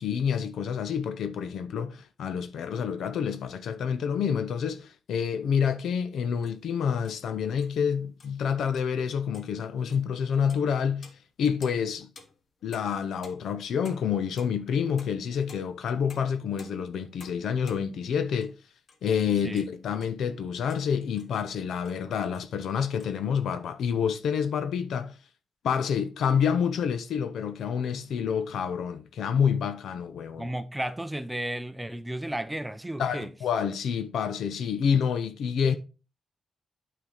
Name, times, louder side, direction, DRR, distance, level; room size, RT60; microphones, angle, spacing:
voice 1, 0.0-11.1 11.4-12.1 12.6-18.5 19.0-25.2 25.6-30.5 33.0-35.7, left 7 dB, 85° left, 0.7 m, -28 dB
sound 1, 6.4-6.6 7.0-7.2 7.6-7.7 8.2-8.4 8.7-9.0 9.3-9.5 9.9-10.1 10.5-10.7 11.0-18.6 18.9-19.0 19.4-20.2 20.7-20.9 21.2-21.3 21.8-22.0 22.3-23.1, left 4 dB, 50° left, 1.2 m, -53 dB
voice 2, 30.4-33.3, right 1 dB, 5° right, 0.6 m, -33 dB
8.9 x 4.7 x 3.8 m
wide cardioid pair, 140°, 0 cm